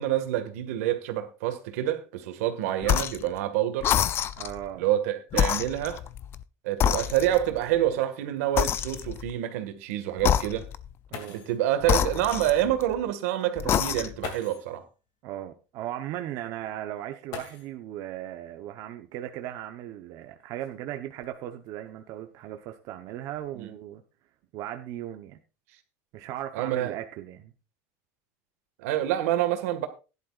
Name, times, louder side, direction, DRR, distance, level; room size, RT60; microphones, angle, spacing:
voice 1, 0.0-3.9 4.8-6.0 6.6-10.6 11.3-14.8 23.6-23.7 26.5-27.0 28.8-29.9, right 12 dB, 85° right, 1.9 m, -27 dB
sound 1, 2.8-3.3 3.8-4.6 5.3-6.4 6.8-7.6 8.6-9.3 10.2-10.9 11.8-13.0 13.6-14.3, left 10 dB, 30° left, 0.5 m, -27 dB
voice 2, 4.4-4.8 11.1-11.4 15.2-24.0 24.5-25.4 26.1-27.5, right 12 dB, 50° right, 1.0 m, -37 dB
sound 2, 11.1-11.7 12.9-13.0 14.2-14.8 17.3-18.0 19.4-19.5 20.2-21.7 22.4-22.7 23.1-23.5, left 7 dB, 55° left, 2.6 m, -43 dB
16.0 x 11.0 x 2.5 m
cardioid pair, 155°, 8 cm